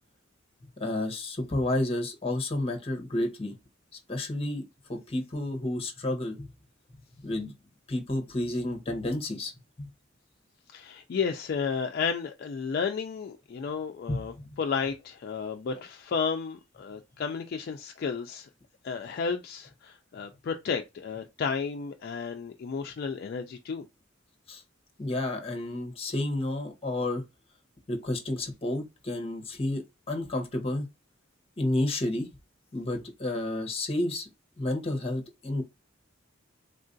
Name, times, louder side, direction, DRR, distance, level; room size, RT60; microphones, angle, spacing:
voice 1, 0.8-3.5 4.1-4.6 4.9-6.5 7.2-7.5 7.9-9.5 14.1-14.5 24.5-24.6 25.0-27.2 27.9-30.9 31.6-32.3 32.7-34.3 34.6-35.6, left 1 dB, 30° left, 0.8 m, -30 dB
voice 2, 10.7-18.5 18.8-23.9, left 5 dB, 55° left, 0.3 m, -32 dB
3.6 x 2.4 x 2.6 m
head